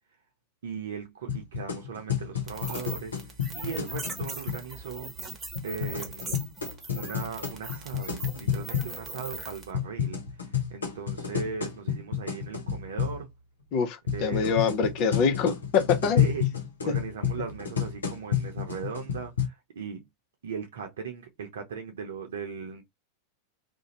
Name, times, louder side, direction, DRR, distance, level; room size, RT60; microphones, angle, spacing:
voice 1, 0.6-5.1 5.6-6.4 6.9-13.3 14.1-14.7 16.1-16.5 16.8-20.1 20.4-22.8, right 6 dB, 70° right, 0.7 m, -38 dB
sound 1, 1.3-4.6 5.6-8.9 9.7-13.2 14.1-19.5, left 8 dB, 80° left, 0.8 m, -30 dB
sound 2, 2.5-9.7, right 3 dB, 20° right, 1.0 m, -40 dB
voice 2, 13.7-16.2, left 6 dB, 45° left, 0.7 m, -25 dB
2.5 x 2.2 x 2.9 m
figure-of-eight pair, 90°, 0 cm